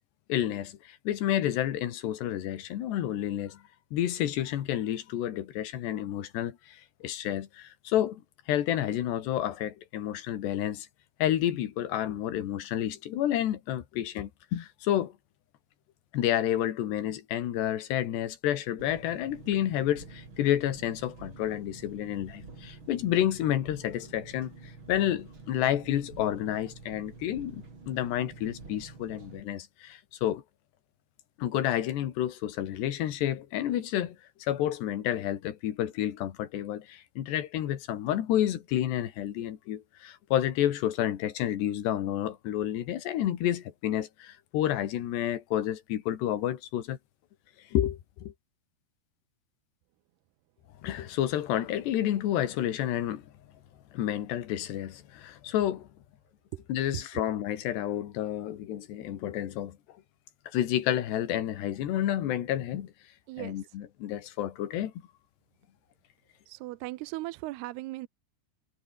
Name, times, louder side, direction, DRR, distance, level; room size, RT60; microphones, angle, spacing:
voice 1, 0.3-3.6 3.9-8.2 8.5-10.9 11.2-15.1 16.1-30.4 31.4-47.0 47.7-48.3 50.8-53.3 53.9-55.9 56.7-59.8 60.5-62.9 63.4-64.9, left 12 dB, 75° left, 4.0 m, -30 dB
Engine, 18.8-29.4, right 3 dB, 30° right, 5.0 m, -48 dB
voice 2, 63.3-63.6 66.5-68.1, right 18 dB, 75° right, 2.6 m, -38 dB
omnidirectional pair, 5.0 m